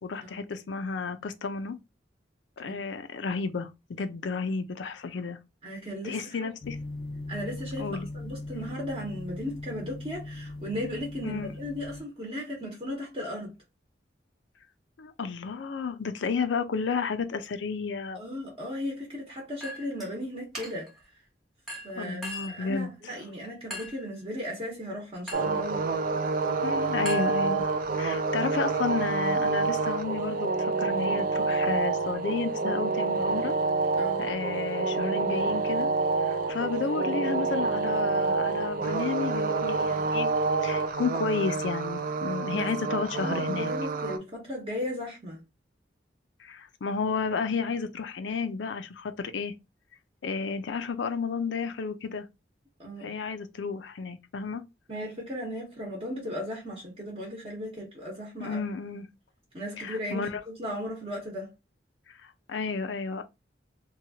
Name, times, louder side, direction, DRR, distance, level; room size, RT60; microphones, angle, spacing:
voice 1, 0.0-1.8 2.6-3.7 4.0-5.4 6.0-6.8 7.8-8.1 11.2-11.5 15.0-18.2 22.0-23.1 26.6-27.7 28.0-33.5 34.2-35.9 36.2-40.3 40.6-43.7 46.4-49.5 50.2-52.3 53.0-54.6 58.4-59.1 59.8-60.4 62.5-63.2, left 5 dB, 85° left, 0.4 m, -32 dB
voice 2, 5.6-6.5 7.3-13.5 18.1-20.9 21.8-25.8 33.9-34.2 42.5-42.7 43.1-45.4 52.8-53.1 54.9-58.6 59.5-61.5, equal, 30° right, 0.9 m, -36 dB
sound 1, 6.6-12.0, left 2 dB, 30° left, 0.4 m, -39 dB
Chink clink, 19.6-20.1 20.6-21.0 21.7-22.7 23.7-24.1 25.3-25.6 27.1-27.9, left 1 dB, ahead, 1.0 m, -40 dB
sound 2, 25.3-44.2, right 4 dB, 50° right, 0.4 m, -28 dB
2.8 x 2.2 x 2.7 m
head